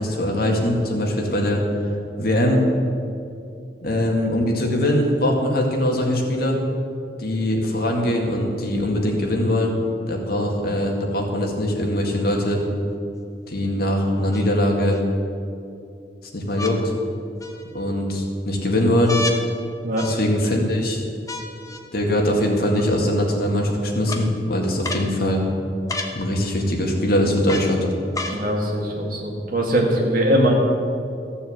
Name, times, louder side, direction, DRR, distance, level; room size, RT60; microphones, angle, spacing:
voice 1, 0.0-1.6 2.2-2.6 3.8-6.6 7.2-9.7 10.1-12.6 13.5-15.0 16.3-16.8 17.7-19.2 20.0-21.0 21.9-25.4 26.1-27.9, left 1 dB, 60° left, 0 dB, 2.0 m, -21 dB
sound 1, 12.6-12.7 14.3-15.0 16.5-16.8 17.4-17.9 19.1-19.4 20.0-20.5 21.3-21.8 22.8-22.9 24.1-24.2 24.8-25.1 25.9-26.2 27.5-27.7 28.1-28.4 29.3-29.4, left 3 dB, 20° left, 1.0 m, -31 dB
voice 2, 28.3-30.5, equal, 55° right, 0 dB, 2.2 m, -21 dB
14.5 x 7.0 x 7.9 m, 2.6 s
head